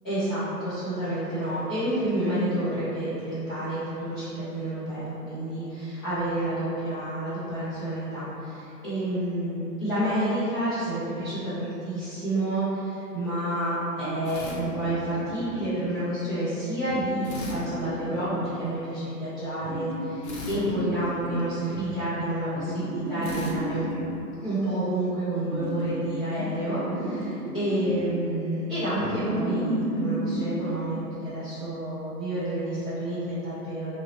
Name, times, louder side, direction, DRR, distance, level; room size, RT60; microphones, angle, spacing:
voice 1, 0.0-23.8 24.4-30.9 31.2-34.0, right 1 dB, 15° left, -17 dB, 0.5 m, -29 dB
sound 1, 14.0-15.8 16.9-18.6 19.6-21.5 22.6-24.1 25.5-26.1 26.4-27.9 29.0-30.5, right 1 dB, 60° right, 0.7 m, -32 dB
sound 2, 14.2-15.4 17.2-18.6 20.2-21.9 23.2-24.8, left 1 dB, 45° left, 0.7 m, -42 dB
2.9 x 2.7 x 2.8 m, 2.8 s
hypercardioid pair, 130°, 48 cm